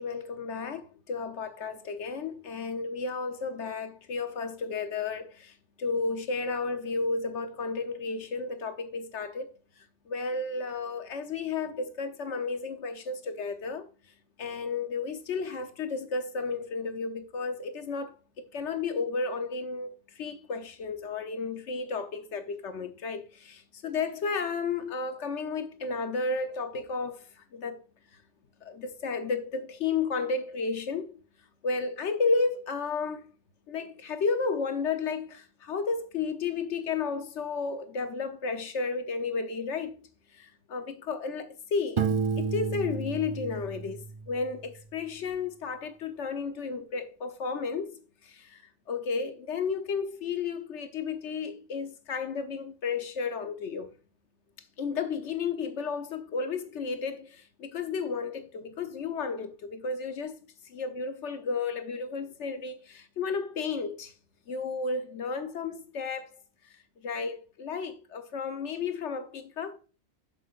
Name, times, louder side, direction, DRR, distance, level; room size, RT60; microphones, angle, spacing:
voice 1, 0.0-9.5 10.1-13.8 14.4-27.2 27.5-27.8 28.6-31.2 31.6-33.2 33.7-40.1 40.4-42.1 42.4-48.0 48.3-48.6 48.9-53.9 54.8-60.3 60.7-64.1 64.5-66.4 67.0-69.8, left 4 dB, 70° left, 1.2 m, -33 dB
Piano, 42.0-44.7, right 5 dB, 40° right, 0.4 m, -31 dB
7.6 x 6.6 x 2.4 m
omnidirectional pair, 1.2 m